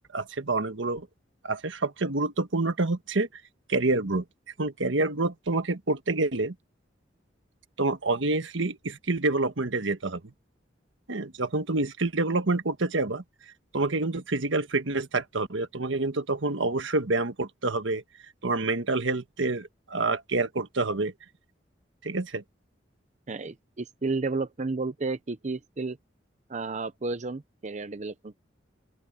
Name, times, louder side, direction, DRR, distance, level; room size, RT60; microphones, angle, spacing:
voice 1, 0.1-1.1 1.4-3.3 3.7-4.2 4.6-6.5 7.8-10.2 11.1-13.2 13.7-18.0 18.4-21.1 22.0-22.4, right 2 dB, 80° right, 1.4 m, -27 dB
voice 2, 23.3-26.0 26.5-28.4, right 3 dB, 40° right, 0.7 m, -32 dB
open air
head